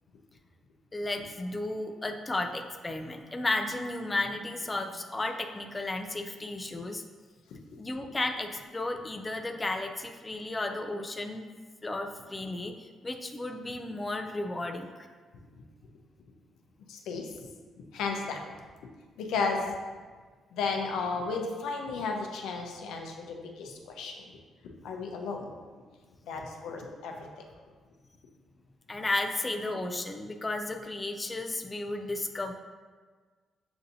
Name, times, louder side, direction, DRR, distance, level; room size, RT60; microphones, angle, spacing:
voice 1, 0.9-7.0 7.8-11.5 11.8-15.1 28.9-32.5, left 2 dB, 20° left, 5 dB, 0.3 m, -33 dB
voice 2, 16.9-17.3 17.8-18.5 19.2-19.8 20.5-24.4 24.8-25.5 26.2-27.4, left 4 dB, 85° left, 2 dB, 0.5 m, -34 dB
6.8 x 2.6 x 2.6 m, 1.5 s
cardioid pair, 90°, 0 cm